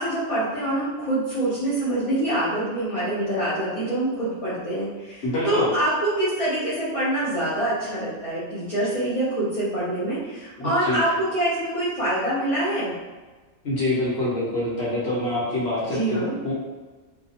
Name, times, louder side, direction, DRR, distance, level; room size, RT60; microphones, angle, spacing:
voice 1, 0.0-12.9 15.8-16.4, right 1 dB, 35° left, -12 dB, 0.6 m, -25 dB
voice 2, 5.2-5.7 10.6-11.0 13.6-16.5, left 1 dB, 55° left, -7 dB, 1.1 m, -26 dB
2.7 x 2.4 x 2.7 m, 1.3 s
omnidirectional pair, 1.4 m